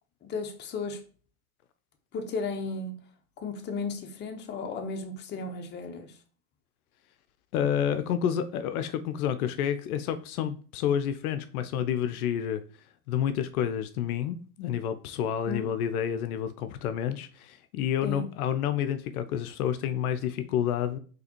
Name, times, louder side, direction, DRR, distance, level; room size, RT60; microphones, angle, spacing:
voice 1, 0.2-1.0 2.1-3.0 3.4-6.1 15.5-15.7 18.0-18.3, left 4 dB, 25° left, 0.6 m, -34 dB
voice 2, 7.5-12.6 13.1-21.0, left 9 dB, 65° left, 0.5 m, -29 dB
3.9 x 2.9 x 2.9 m
hypercardioid pair, 100°, 47 cm